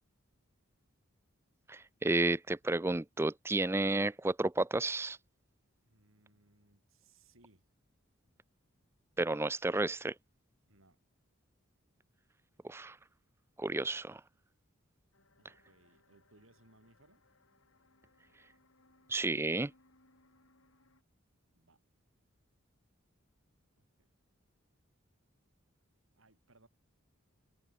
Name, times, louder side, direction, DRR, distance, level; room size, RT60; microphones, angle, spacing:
voice 1, 1.7-5.2 9.2-10.1 12.6-13.0 13.6-14.2 19.1-19.7, right 2 dB, 10° right, 0.4 m, -32 dB
voice 2, 5.8-7.7 10.7-11.0 15.4-17.2 21.5-21.8 23.8-24.1 26.1-26.7, right 2 dB, 75° right, 5.8 m, -66 dB
sound 1, 15.1-21.0, left 2 dB, 80° left, 5.7 m, -69 dB
open air
head